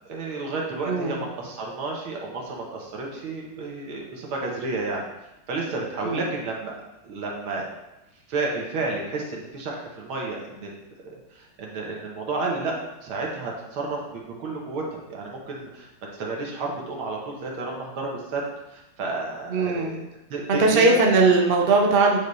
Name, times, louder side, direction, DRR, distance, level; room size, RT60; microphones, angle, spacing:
voice 1, 0.1-6.7 7.0-7.7 8.3-10.7 11.1-12.7 13.0-15.9 16.2-20.0 20.3-20.9 21.9-22.0, right 3 dB, 75° right, -1 dB, 2.1 m, -31 dB
voice 2, 0.8-1.2 6.0-6.2 19.5-19.9 20.5-22.2, right 3 dB, 50° right, 0 dB, 0.7 m, -19 dB
9.1 x 3.4 x 4.1 m, 0.97 s
omnidirectional pair, 2.3 m